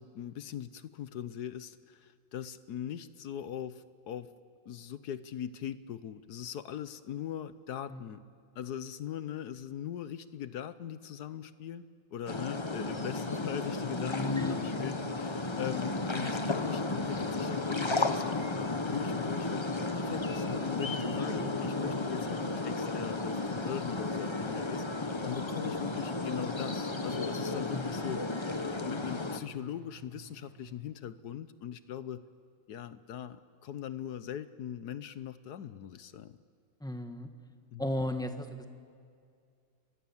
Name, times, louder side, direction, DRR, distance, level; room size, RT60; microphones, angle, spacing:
voice 1, 0.0-4.3 4.6-8.2 8.5-11.8 12.1-19.7 19.9-24.8 25.2-28.2 28.8-32.2 32.7-36.4 37.7-37.9, left 10 dB, 65° left, 13 dB, 1.3 m, -40 dB
sound 1, 12.3-29.4, left 2 dB, 20° left, 0.8 m, -33 dB
sound 2, 14.7-30.7, right 5 dB, 30° right, 4.9 m, -54 dB
voice 2, 36.8-37.3 37.8-38.7, left 1 dB, ahead, 6 dB, 1.3 m, -35 dB
30.0 x 23.5 x 7.2 m, 2.3 s
omnidirectional pair, 2.0 m